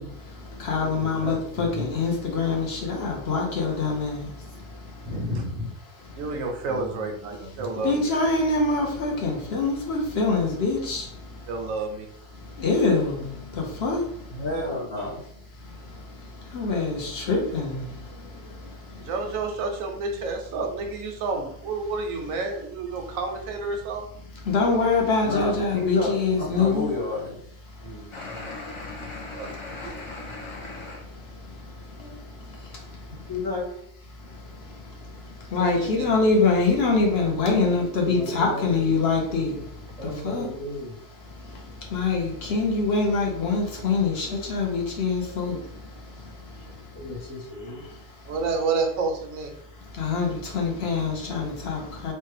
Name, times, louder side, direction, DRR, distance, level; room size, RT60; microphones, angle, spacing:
voice 1, 0.0-5.1 6.1-6.2 7.8-11.5 12.4-14.4 15.6-19.1 24.4-26.9 27.8-28.0 28.3-33.3 34.2-40.5 41.3-47.0 47.8-48.3 49.9-52.1, left 4 dB, 60° left, 0 dB, 0.8 m, -26 dB
voice 2, 0.8-2.0 5.0-5.7 6.7-7.7 27.8-28.5 37.6-37.8 38.0-38.8 40.0-41.0 46.7-47.9, left 1 dB, 30° right, -7 dB, 0.6 m, -35 dB
voice 3, 6.1-8.1 11.5-12.1 19.0-24.1 29.4-29.5 29.8-29.9 35.6-36.1 48.3-49.5, right 3 dB, 90° right, 4 dB, 1.0 m, -29 dB
voice 4, 14.3-15.2 25.2-27.4 33.1-33.7, left 2 dB, 80° left, -7 dB, 1.7 m, -30 dB
sound 1, 28.1-31.0, left 2 dB, 45° left, 0.4 m, -38 dB
3.1 x 2.1 x 3.2 m, 0.70 s
omnidirectional pair, 1.4 m